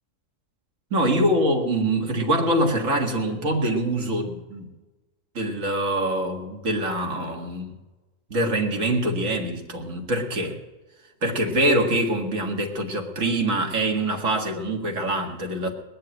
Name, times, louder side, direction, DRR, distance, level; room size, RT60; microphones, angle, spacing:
voice 1, 0.9-4.7 5.3-7.7 8.3-10.6 11.2-15.7, right 1 dB, 70° right, 2.3 m, -24 dB
20.0 x 6.7 x 9.0 m
omnidirectional pair, 1.4 m